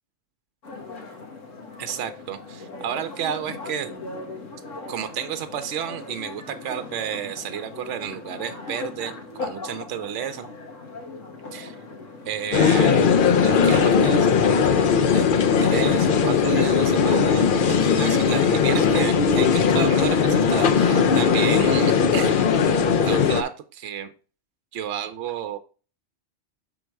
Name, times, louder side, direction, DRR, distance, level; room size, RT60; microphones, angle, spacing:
sound 1, 0.6-18.4, left 3 dB, 85° left, 1.7 m, -39 dB
voice 1, 1.8-4.0 4.9-10.5 11.5-11.8 12.2-13.1 13.4-15.3 15.6-24.1 24.7-25.6, right 9 dB, 75° right, 9 dB, 1.0 m, -31 dB
sound 2, 12.5-23.4, left 6 dB, 55° left, 0.7 m, -19 dB
6.3 x 3.8 x 4.6 m, 0.35 s
omnidirectional pair, 1.3 m